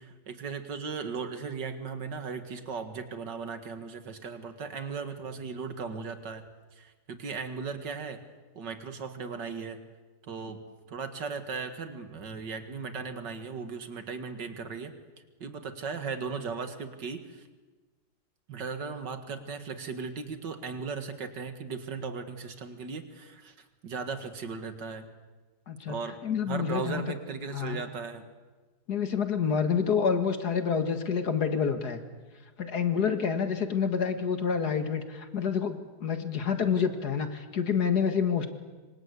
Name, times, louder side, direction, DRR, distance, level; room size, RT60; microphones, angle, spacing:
voice 1, 0.0-6.4 6.7-8.2 8.6-9.8 10.3-10.6 10.9-14.9 15.4-17.5 18.5-23.6 23.8-25.0 25.9-26.2 26.5-28.3, right 5 dB, 90° right, 8 dB, 2.5 m, -37 dB
voice 2, 26.2-27.0 27.5-27.8 28.9-32.0 32.6-38.5, left 6 dB, 65° left, 8 dB, 2.4 m, -28 dB
26.5 x 25.5 x 8.3 m, 1.3 s
omnidirectional pair, 1.8 m